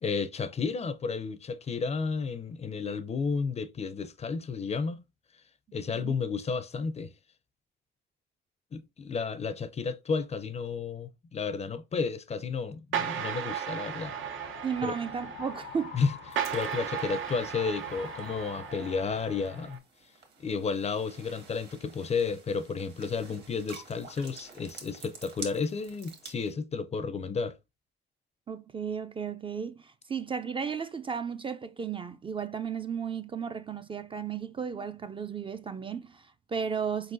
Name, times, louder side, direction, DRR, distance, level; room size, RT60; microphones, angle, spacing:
voice 1, 0.0-5.0 5.7-7.1 8.7-14.1 14.8-14.9 15.9-16.1 16.5-19.8 20.4-27.6, left 5 dB, 35° left, 0.4 m, -32 dB
sound 1, 12.9-19.8, right 8 dB, 75° right, 0.6 m, -36 dB
sound 2, 13.8-19.7, left 8 dB, 85° left, 0.6 m, -47 dB
voice 2, 14.6-16.0 28.5-37.1, right 6 dB, 25° right, 0.4 m, -34 dB
sound 3, 16.3-26.5, right 4 dB, 60° right, 1.5 m, -50 dB
4.3 x 3.9 x 2.5 m
cardioid pair, 90°, 20 cm